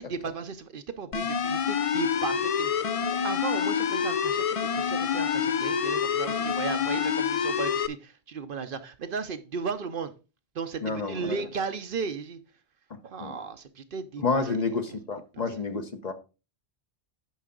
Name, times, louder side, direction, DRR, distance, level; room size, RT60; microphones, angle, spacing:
voice 1, 0.0-2.9 3.2-10.1 10.5-12.4 13.0-15.0 15.3-15.4, right 5 dB, 60° right, 0.8 m, -35 dB
sound 1, 1.1-7.9, left 7 dB, 60° left, 0.3 m, -27 dB
voice 2, 10.8-11.4 13.2-13.3 14.2-16.1, left 4 dB, 40° left, 0.9 m, -29 dB
9.4 x 5.6 x 3.8 m
omnidirectional pair, 1.1 m